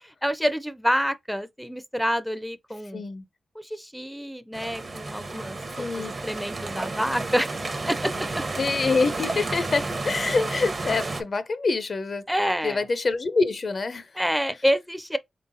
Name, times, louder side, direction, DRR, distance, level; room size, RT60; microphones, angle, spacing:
voice 1, 0.0-3.1 3.6-7.5 7.9-8.4 12.3-12.8 14.2-15.2, equal, ahead, 0.4 m, -28 dB
voice 2, 2.9-3.2 5.7-6.1 8.6-12.3 12.6-14.2, left 4 dB, 55° left, 0.5 m, -26 dB
sound 1, 4.5-11.2, right 2 dB, 45° right, 0.7 m, -31 dB
3.8 x 3.5 x 2.5 m
cardioid pair, 60°, 0 cm